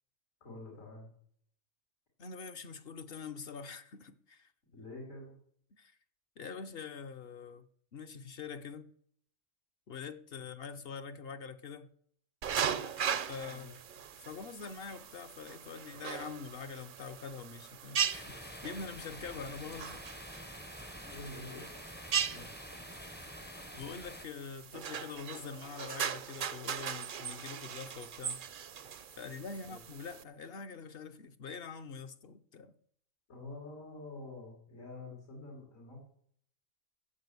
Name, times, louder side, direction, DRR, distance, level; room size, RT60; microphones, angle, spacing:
voice 1, 0.4-1.1 4.7-5.3 13.4-13.7 21.1-22.7 29.7-29.8 33.3-36.0, left 2 dB, 90° left, 4.2 m, -47 dB
voice 2, 2.2-4.5 5.7-5.9 6.4-7.7 7.9-8.9 9.9-11.9 13.3-13.7 14.2-20.1 23.1-28.4 29.2-32.7, left 5 dB, 55° left, 0.9 m, -45 dB
sound 1, 12.4-30.2, right 8 dB, 55° right, 0.6 m, -39 dB
sound 2, 18.1-24.2, left 1 dB, 10° left, 0.5 m, -48 dB
14.0 x 7.3 x 8.1 m
omnidirectional pair, 1.3 m